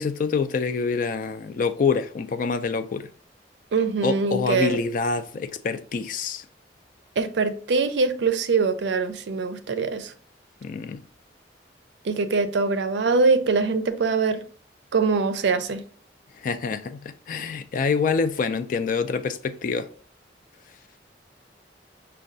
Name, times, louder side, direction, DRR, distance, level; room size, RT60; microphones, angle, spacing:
voice 1, 0.0-3.1 4.0-6.5 10.6-11.0 16.4-19.9, left 5 dB, 50° left, 0.3 m, -26 dB
voice 2, 3.7-4.8 7.2-10.1 12.0-14.4 14.9-15.8, right 4 dB, 75° right, 0.4 m, -23 dB
6.1 x 2.2 x 2.6 m
head